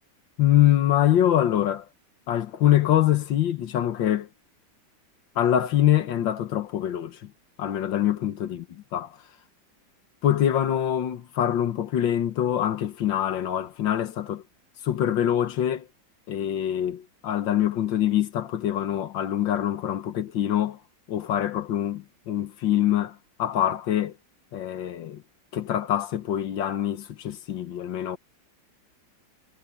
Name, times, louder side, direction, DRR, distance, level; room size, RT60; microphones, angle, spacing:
voice 1, 0.4-1.9 2.3-4.3 5.4-7.3 7.6-9.2 10.2-14.4 14.8-15.9 16.3-20.8 21.1-24.2 24.5-25.2 25.5-28.2, left 11 dB, 80° left, 1.8 m, -24 dB
omnidirectional pair, 2.0 m